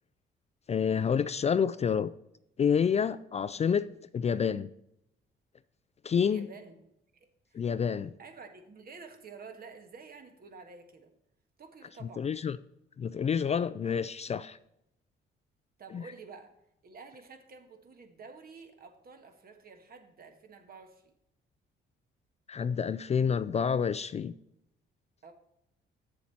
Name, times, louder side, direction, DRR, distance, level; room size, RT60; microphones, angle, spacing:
voice 1, 0.7-2.1 2.6-4.7 6.0-6.5 7.5-8.1 12.2-12.6 13.0-14.6 15.9-16.0 22.5-24.3, left 7 dB, 35° left, 14 dB, 0.3 m, -28 dB
voice 2, 6.2-6.9 7.1-7.7 8.2-11.1 11.6-12.3 15.8-16.6 16.8-21.1 25.2-25.3, right 4 dB, 50° right, 6 dB, 1.5 m, -50 dB
7.8 x 7.2 x 4.3 m, 0.80 s
cardioid pair, 90°, 20 cm